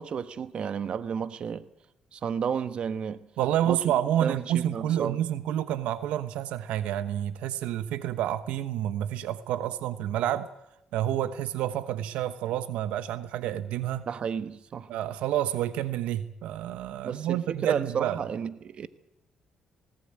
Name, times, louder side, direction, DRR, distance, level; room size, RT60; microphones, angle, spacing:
voice 1, 0.0-1.7 2.1-3.3 3.7-3.8 4.2-5.2 14.1-14.9 17.0-18.9, right 7 dB, 55° right, 1.2 m, -32 dB
voice 2, 3.4-10.5 10.9-14.1 14.9-18.2, right 11 dB, 85° right, 1.1 m, -29 dB
19.5 x 18.0 x 8.8 m
cardioid pair, 80°, 2 cm